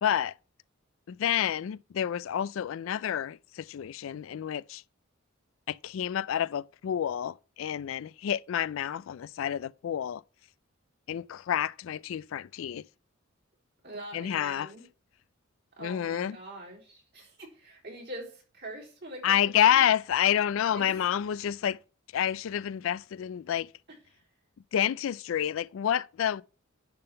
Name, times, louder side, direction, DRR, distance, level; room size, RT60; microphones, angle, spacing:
voice 1, 0.0-0.3 1.1-4.8 5.7-10.2 11.1-12.8 14.1-14.7 15.8-16.4 19.2-21.8 22.1-23.7 24.7-26.4, left 10 dB, 70° left, 0.3 m, -29 dB
voice 2, 13.8-14.8 15.8-19.8 20.7-21.1, right 1 dB, 50° right, 3.9 m, -44 dB
10.5 x 3.8 x 6.7 m
head